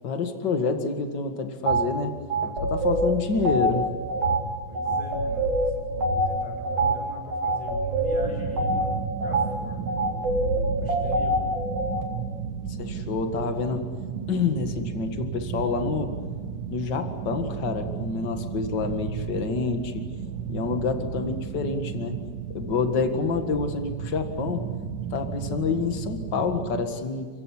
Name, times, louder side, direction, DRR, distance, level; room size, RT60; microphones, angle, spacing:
voice 1, 0.0-2.1 2.4-3.9 12.8-13.9 14.3-16.1 16.7-20.1 20.5-22.2 22.5-24.7 25.1-27.3, left 4 dB, 40° left, 6 dB, 1.8 m, -28 dB
sound 1, 1.7-1.8 2.3-12.0, right 1 dB, 45° right, 3.5 m, -26 dB
voice 2, 4.7-11.4, right 1 dB, 10° left, -1 dB, 7.4 m, -42 dB
sound 2, 8.2-26.9, right 7 dB, 70° right, 2.8 m, -34 dB
29.0 x 16.0 x 10.0 m, 1.5 s
omnidirectional pair, 4.2 m